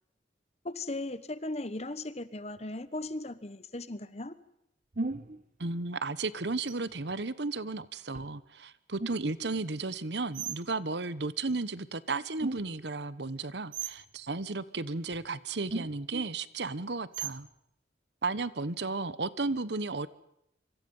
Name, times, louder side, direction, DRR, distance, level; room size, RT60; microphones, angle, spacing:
voice 1, 0.6-4.3, left 2 dB, 35° left, 15 dB, 1.2 m, -37 dB
sound 1, 2.6-2.7 4.9-5.4 6.7-7.2 8.1-8.4 9.0-9.5 10.3-10.6 12.4-12.9 13.7-14.1 15.1-15.3 15.7-16.3 17.1-17.5, right 4 dB, 45° right, 1.0 m, -37 dB
voice 2, 5.6-17.5 18.2-20.1, right 3 dB, 65° right, 16 dB, 1.1 m, -34 dB
26.5 x 25.5 x 5.5 m, 0.78 s
head